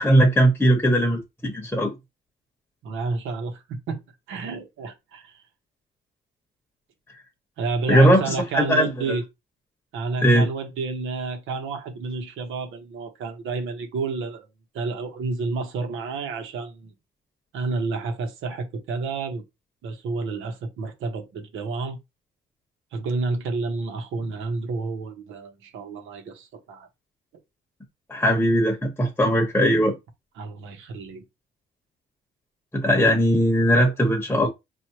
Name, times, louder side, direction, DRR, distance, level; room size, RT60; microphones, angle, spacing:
voice 1, 0.0-1.9 7.9-9.2 10.2-10.5 28.1-29.9 32.7-34.5, equal, 10° left, 1.1 m, -19 dB
voice 2, 2.8-4.0 4.3-5.4 7.6-9.2 9.9-14.5 14.7-16.9 17.5-19.4 19.8-22.0 22.9-26.9 30.4-31.2, right 4 dB, 85° right, 1.2 m, -30 dB
4.7 x 2.7 x 2.9 m
cardioid pair, 90°, 20 cm